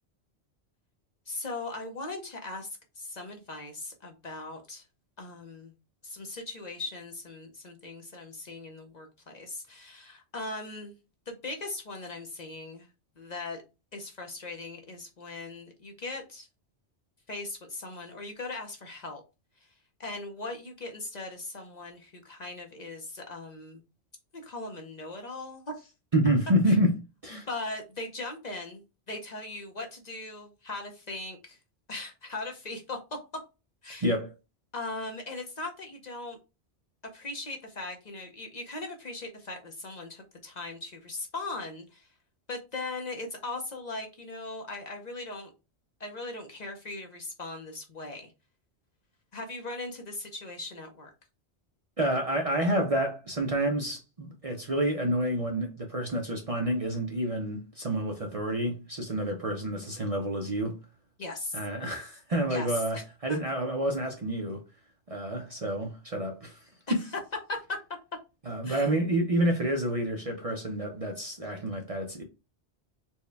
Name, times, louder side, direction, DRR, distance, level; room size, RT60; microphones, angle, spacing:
voice 1, 1.3-4.8 5.2-5.7 6.0-11.0 11.3-12.9 13.2-13.6 13.9-16.5 17.3-19.2 20.0-23.8 24.3-25.9 26.7-26.8 27.3-28.8 29.1-31.6 31.9-33.0 33.8-34.1 34.7-36.4 37.1-42.1 42.5-45.5 46.0-48.3 49.3-51.1 61.2-61.6 62.5-63.0 63.3-63.4 66.9-67.0 67.5-67.8 68.6-68.9, left 2 dB, 45° left, 0.7 m, -39 dB
voice 2, 26.1-26.9 27.2-27.5 34.0-34.3 52.0-60.8 61.5-64.6 65.1-67.0 68.5-72.2, right 1 dB, 40° right, 0.5 m, -28 dB
4.4 x 2.2 x 3.3 m
omnidirectional pair, 1.1 m